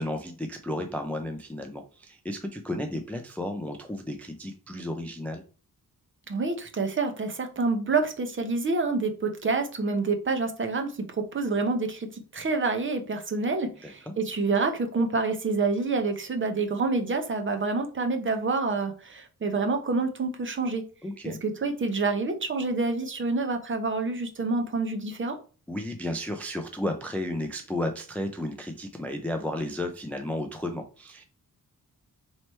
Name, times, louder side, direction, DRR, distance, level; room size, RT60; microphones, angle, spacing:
voice 1, 0.0-5.4 13.8-14.1 21.0-21.4 25.7-31.2, left 1 dB, 5° left, 5 dB, 0.3 m, -33 dB
voice 2, 6.3-12.1 12.3-20.8 21.2-25.4, right 3 dB, 35° right, 6 dB, 0.6 m, -27 dB
3.2 x 3.0 x 4.2 m, 0.36 s
wide cardioid pair, 150°, 35 cm